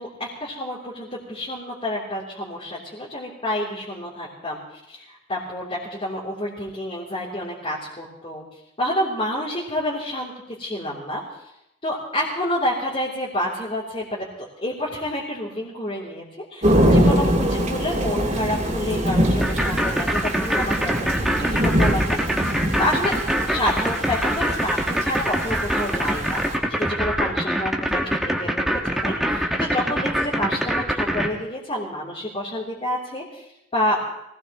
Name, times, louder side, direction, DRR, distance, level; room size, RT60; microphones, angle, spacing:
voice 1, 0.0-4.6 4.9-8.4 8.8-11.2 11.8-22.4 22.8-23.2 23.5-34.1, left 1 dB, 30° left, -6 dB, 3.3 m, -29 dB
Thunder / Rain, 16.6-26.5, equal, 40° right, 3.0 m, -23 dB
sound 1, 19.4-31.3, equal, ahead, 1.6 m, -23 dB
24.0 x 18.5 x 3.1 m, 0.82 s
head